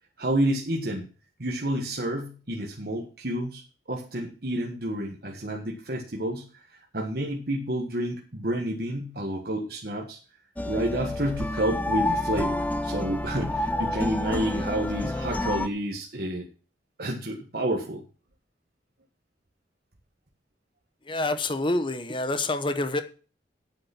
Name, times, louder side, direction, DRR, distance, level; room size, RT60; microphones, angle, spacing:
voice 1, 0.2-1.1 1.4-3.6 3.9-10.2 10.6-16.5 17.0-18.0, right 1 dB, 55° right, 0 dB, 1.6 m, -30 dB
sound 1, 10.6-15.7, left 1 dB, 10° left, 0.6 m, -29 dB
voice 2, 21.1-23.0, left 2 dB, 25° left, 9 dB, 1.0 m, -27 dB
9.0 x 8.6 x 6.0 m, 0.37 s
head